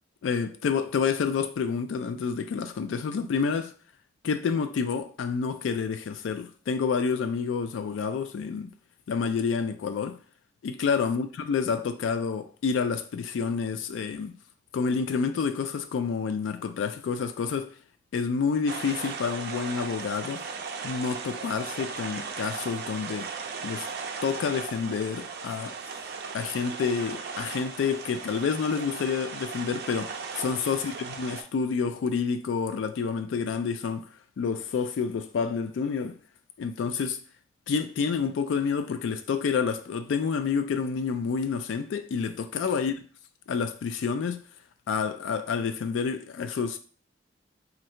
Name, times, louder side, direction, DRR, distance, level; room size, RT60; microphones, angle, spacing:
voice 1, 0.2-3.7 4.2-8.7 9.1-10.2 10.6-14.4 14.7-17.7 18.1-20.5 20.8-23.3 23.6-23.9 24.2-25.8 26.3-34.1 34.4-36.2 36.6-37.2 37.7-42.9 43.5-44.4 44.9-46.8, left 5 dB, 90° left, 0.3 m, -28 dB
sound 1, 18.7-31.4, right 5 dB, 60° right, 0.4 m, -37 dB
2.7 x 2.6 x 4.3 m
head